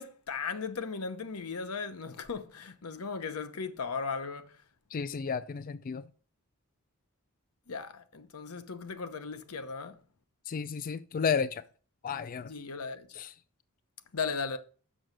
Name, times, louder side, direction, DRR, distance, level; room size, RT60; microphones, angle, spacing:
voice 1, 0.0-4.6 7.7-10.0 12.4-13.1 14.1-14.6, left 5 dB, 90° left, 0.9 m, -37 dB
voice 2, 4.9-6.0 10.5-11.6 12.0-12.5 13.1-13.3, left 6 dB, 40° left, 0.3 m, -32 dB
6.3 x 6.0 x 6.5 m
head